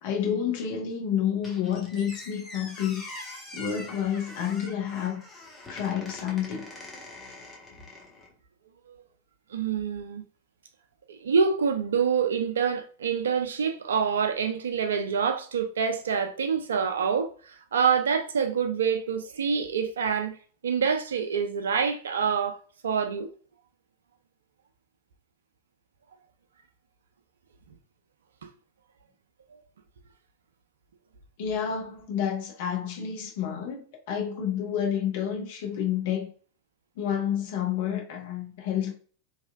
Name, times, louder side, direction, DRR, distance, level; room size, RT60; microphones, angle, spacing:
voice 1, 0.0-3.0 3.5-5.2 5.7-6.7 31.4-36.3 37.0-39.0, left 8 dB, 50° left, 0.8 m, -29 dB
Squeak, 1.4-8.3, left 2 dB, 15° left, 0.8 m, -44 dB
voice 2, 9.5-10.2 11.1-20.3 20.6-23.3 28.4-28.5 29.5-29.6, right 6 dB, 65° right, 0.4 m, -26 dB
2.9 x 2.3 x 2.3 m
figure-of-eight pair, 90°, 0 cm